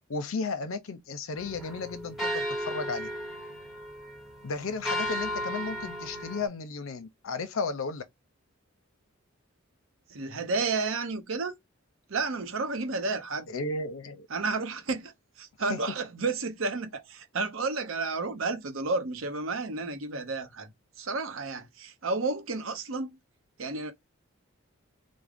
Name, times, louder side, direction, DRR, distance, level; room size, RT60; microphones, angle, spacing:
voice 1, 0.1-3.1 4.4-8.0 13.5-14.3 15.7-15.8, left 4 dB, 70° left, 0.6 m, -34 dB
sound 1, 1.4-6.5, equal, ahead, 0.9 m, -35 dB
voice 2, 10.1-11.5 12.1-13.5 14.3-23.2 23.6-23.9, right 3 dB, 70° right, 0.7 m, -31 dB
3.6 x 2.1 x 3.4 m
head